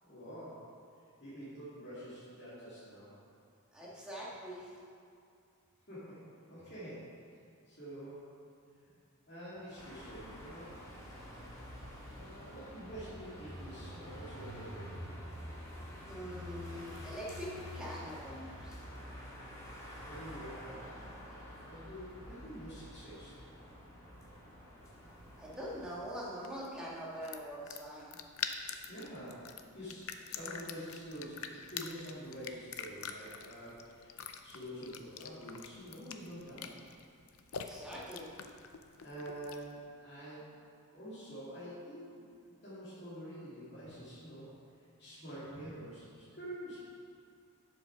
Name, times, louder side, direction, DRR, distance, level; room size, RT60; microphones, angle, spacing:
voice 1, 0.0-0.7 1.2-3.2 5.9-7.1 7.7-8.3 9.3-10.7 12.1-15.0 20.0-23.3 28.9-36.8 39.0-40.5 40.9-42.2 42.6-44.5 45.0-46.8, equal, 45° left, -12 dB, 2.6 m, -47 dB
voice 2, 3.7-4.7 16.1-18.8 25.4-28.2 37.7-38.3 43.8-43.9 45.6-45.7, equal, 5° right, -7 dB, 1.9 m, -43 dB
sound 1, 9.8-26.0, equal, 15° left, 1.8 m, -48 dB
sound 2, 24.9-39.8, left 7 dB, 65° left, 0.6 m, -46 dB
7.8 x 7.4 x 5.9 m, 2.4 s
head